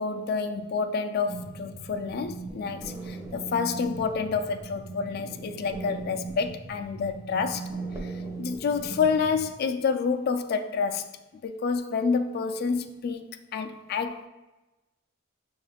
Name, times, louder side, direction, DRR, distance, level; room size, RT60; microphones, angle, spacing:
voice 1, 0.0-7.6 8.0-8.1 8.4-11.1 11.4-13.2 13.5-14.3, left 5 dB, 50° left, 8 dB, 0.3 m, -28 dB
sound 1, 1.3-9.5, right 3 dB, 15° right, 0.5 m, -39 dB
6.3 x 2.3 x 3.4 m, 1.1 s
head